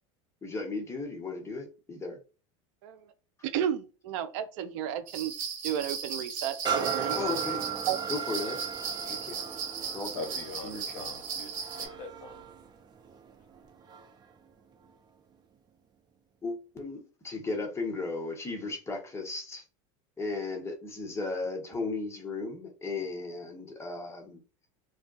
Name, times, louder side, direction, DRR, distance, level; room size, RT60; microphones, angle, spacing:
voice 1, 0.4-2.2 7.1-7.6 8.1-8.6 9.1-9.4 9.9-10.2 10.6-11.0 16.4-19.6 20.2-24.4, left 3 dB, 15° left, 1.1 m, -35 dB
voice 2, 2.8-3.1 3.4-5.3 5.6-7.2 7.9-8.0, right 10 dB, 65° right, 0.5 m, -32 dB
sound 1, 5.1-11.9, right 6 dB, 85° right, 0.8 m, -37 dB
sound 2, 6.7-14.3 14.8-14.9, right 7 dB, 25° right, 0.6 m, -36 dB
voice 3, 10.1-12.4, left 3 dB, 60° left, 0.8 m, -42 dB
2.3 x 2.2 x 3.9 m
hypercardioid pair, 95°, 17 cm